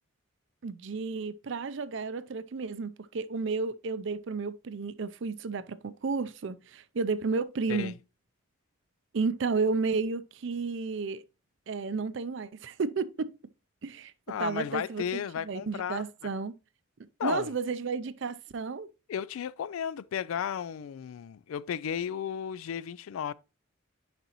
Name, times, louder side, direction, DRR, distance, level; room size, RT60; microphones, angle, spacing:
voice 1, 0.6-7.9 9.1-11.2 11.7-13.3 13.8-14.1 14.4-16.5 17.2-18.9, right 4 dB, 60° right, 0.5 m, -32 dB
voice 2, 14.3-16.1 17.2-17.5 19.1-23.3, left 8 dB, 85° left, 0.3 m, -34 dB
10.0 x 4.0 x 2.9 m
head